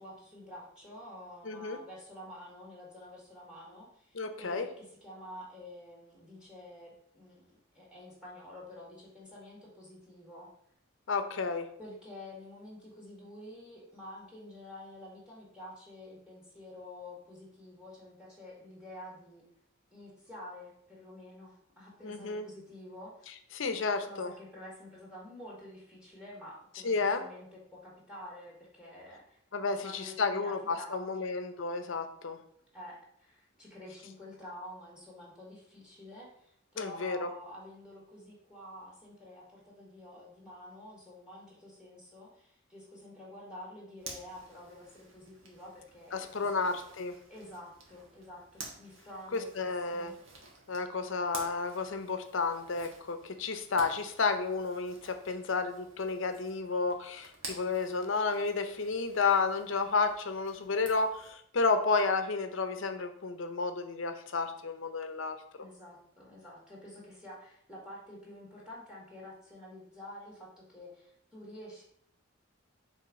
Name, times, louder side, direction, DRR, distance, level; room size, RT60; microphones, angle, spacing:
voice 1, 0.0-10.5 11.8-19.4 19.9-23.3 24.0-29.4 29.7-31.3 32.7-46.7 47.3-50.1 65.6-71.8, left 1 dB, 5° right, -4 dB, 1.7 m, -49 dB
voice 2, 1.4-1.8 4.1-4.7 11.1-11.7 22.0-22.5 23.5-24.3 26.8-27.2 29.5-32.4 36.8-37.3 46.1-47.2 49.3-50.1 50.7-65.4, left 4 dB, 75° left, 8 dB, 0.7 m, -31 dB
Zipper (clothing), 44.0-61.3, right 3 dB, 75° right, 1.3 m, -51 dB
5.5 x 3.5 x 5.2 m, 0.70 s
head